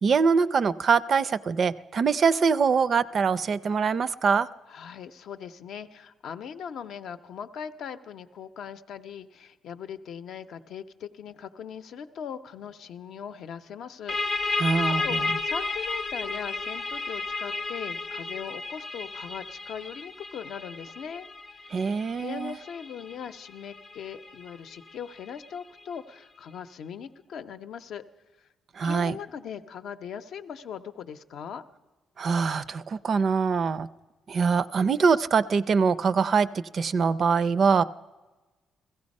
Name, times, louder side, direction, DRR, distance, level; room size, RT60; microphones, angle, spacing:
voice 1, 0.0-4.5 14.6-15.3 21.7-22.6 28.7-29.2 32.2-33.9 34.3-36.5 36.7-37.8, right 5 dB, 45° right, 17 dB, 0.4 m, -23 dB
voice 2, 4.7-21.3 21.6-21.8 22.2-28.0 28.4-28.5 28.8-31.6, left 7 dB, 70° left, 9 dB, 0.6 m, -40 dB
sound 1, 14.1-25.4, left 3 dB, 25° left, 0.7 m, -33 dB
16.0 x 15.0 x 5.3 m, 1.2 s
cardioid pair, 125°, 0 cm